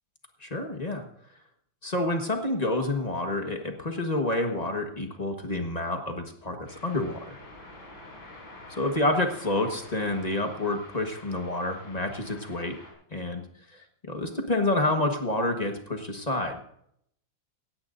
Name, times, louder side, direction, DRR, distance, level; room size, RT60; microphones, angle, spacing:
voice 1, 0.4-1.0 1.8-7.4 8.7-12.8 13.1-13.4 14.0-16.6, left 2 dB, 25° left, 4 dB, 1.3 m, -28 dB
sound 1, 6.7-12.9, left 2 dB, 90° left, 4.7 m, -48 dB
17.5 x 16.0 x 2.6 m, 0.69 s
omnidirectional pair, 2.1 m